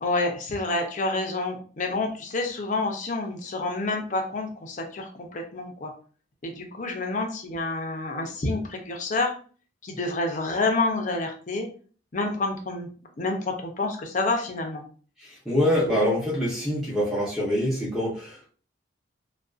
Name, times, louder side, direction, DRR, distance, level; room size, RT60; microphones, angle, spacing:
voice 1, 0.0-5.9 6.4-9.3 9.8-11.7 12.1-12.9 13.2-14.8, left 2 dB, 40° left, 3 dB, 0.5 m, -28 dB
voice 2, 15.2-18.5, equal, ahead, -9 dB, 0.7 m, -25 dB
2.5 x 2.2 x 2.3 m, 0.41 s
head